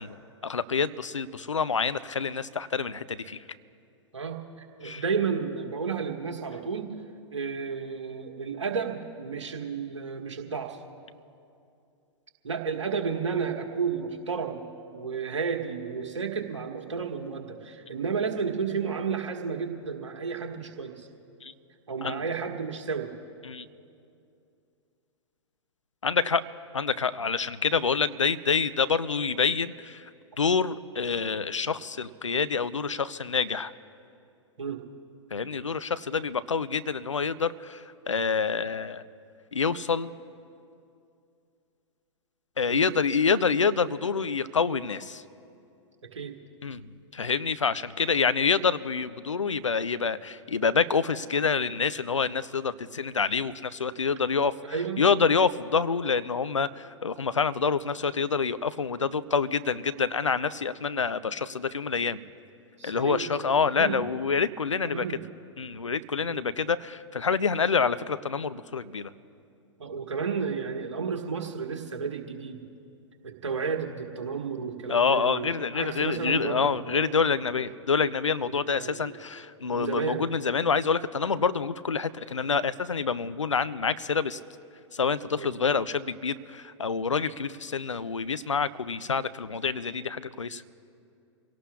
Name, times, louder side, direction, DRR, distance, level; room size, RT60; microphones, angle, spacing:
voice 1, 0.0-3.4 4.8-5.0 21.4-21.5 22.0-22.2 23.4-23.6 26.0-26.4 26.7-30.0 30.4-33.7 35.3-39.0 39.5-40.1 42.6-45.2 46.6-62.2 62.8-65.2 65.6-69.1 74.9-84.4 84.9-90.6, left 5 dB, 80° left, 14 dB, 0.6 m, -27 dB
voice 2, 4.8-6.9 7.3-10.8 12.4-14.6 14.9-21.1 21.9-23.1 34.6-34.8 42.7-42.9 46.0-46.4 54.6-55.0 62.8-64.0 64.8-65.2 66.3-66.5 69.8-72.6 73.2-77.1 78.4-79.1 79.6-80.3 85.3-85.5, right 5 dB, 70° right, 2 dB, 1.6 m, -32 dB
28.5 x 17.5 x 2.4 m, 2.5 s
figure-of-eight pair, 105°, 15 cm